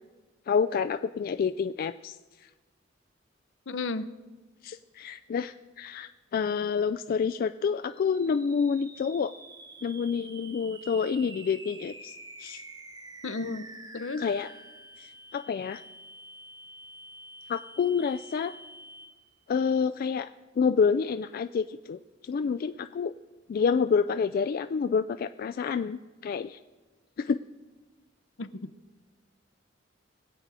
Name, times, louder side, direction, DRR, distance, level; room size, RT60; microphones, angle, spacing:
voice 1, 0.5-2.2 2.4-2.5 4.6-9.3 9.8-12.1 12.4-12.6 14.2-14.5 15.0-15.8 17.5-18.5 19.5-20.3 20.6-23.1 23.5-26.6 27.2-27.4, left 6 dB, 50° left, 10 dB, 0.3 m, -28 dB
voice 2, 3.7-4.1 13.2-13.6 13.9-14.2 28.4-28.7, left 3 dB, 70° left, 13 dB, 0.7 m, -33 dB
sound 1, 7.9-19.4, right 2 dB, 20° right, 1.0 m, -48 dB
21.5 x 8.1 x 4.9 m, 1.3 s
head